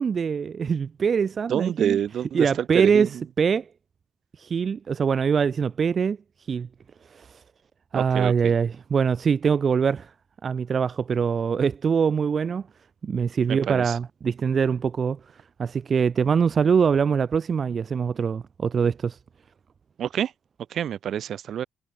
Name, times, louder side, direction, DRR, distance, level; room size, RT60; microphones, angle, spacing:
voice 1, 0.0-2.0 2.3-3.1 3.4-3.7 4.4-6.2 6.5-6.7 7.1-7.4 7.9-10.1 10.4-12.6 13.0-15.2 15.6-19.2, right 6 dB, 45° right, 2.0 m, -23 dB
voice 2, 1.5-2.5 2.7-3.2 7.9-8.5 13.5-14.0 20.0-20.3 20.7-21.7, right 9 dB, 65° right, 4.0 m, -27 dB
cardioid pair, 90°, 0 cm